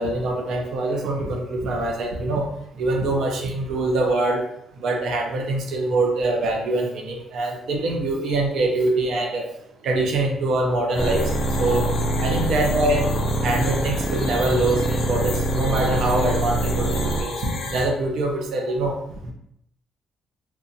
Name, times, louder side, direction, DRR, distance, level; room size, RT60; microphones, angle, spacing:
voice 1, 0.0-2.5 2.8-4.5 4.8-9.5 9.8-11.3 11.6-11.9 12.2-13.1 13.4-19.0 19.3-19.4, right 2 dB, 75° right, 1 dB, 0.5 m, -24 dB
sound 1, 10.9-17.8, left 3 dB, 75° left, 0.6 m, -33 dB
sound 2, 11.0-17.2, right 1 dB, 5° left, 0.4 m, -24 dB
2.9 x 2.2 x 2.7 m, 0.75 s
cardioid pair, 90°, 0 cm